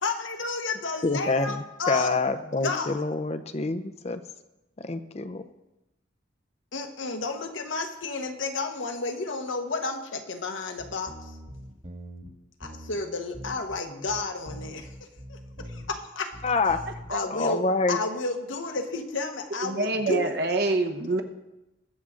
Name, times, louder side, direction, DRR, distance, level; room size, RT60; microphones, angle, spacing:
voice 1, 0.0-3.0 6.7-11.3 12.6-14.9 15.3-15.4 15.7-16.8 17.1-17.6 17.9-20.3, left 3 dB, 75° left, 5 dB, 1.3 m, -32 dB
voice 2, 1.0-4.2 4.8-5.4 16.4-16.8 17.3-18.0, left 3 dB, 30° left, 10 dB, 0.6 m, -26 dB
sound 1, 10.8-12.3 12.6-13.0 13.3-13.8 14.1-16.0 16.3-17.1, equal, 35° right, 1.8 m, -42 dB
voice 3, 19.6-21.2, right 2 dB, 55° right, 5 dB, 1.0 m, -26 dB
21.0 x 7.4 x 3.8 m, 0.97 s
head